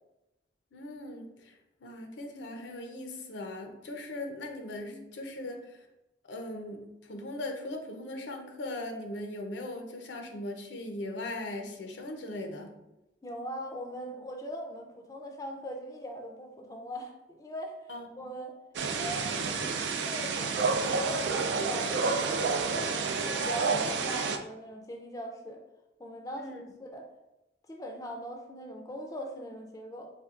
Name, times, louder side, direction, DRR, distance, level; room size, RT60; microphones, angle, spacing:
voice 1, 0.7-5.9 6.3-12.8 17.9-18.1 26.4-26.6, left 1 dB, 85° left, 4 dB, 0.6 m, -39 dB
voice 2, 13.2-17.9 18.2-18.5 18.9-25.6 26.0-27.1 27.7-30.1, equal, 20° left, 2 dB, 0.4 m, -41 dB
sound 1, 18.7-24.4, right 4 dB, 75° right, 0.4 m, -29 dB
4.4 x 3.3 x 2.4 m, 0.94 s
head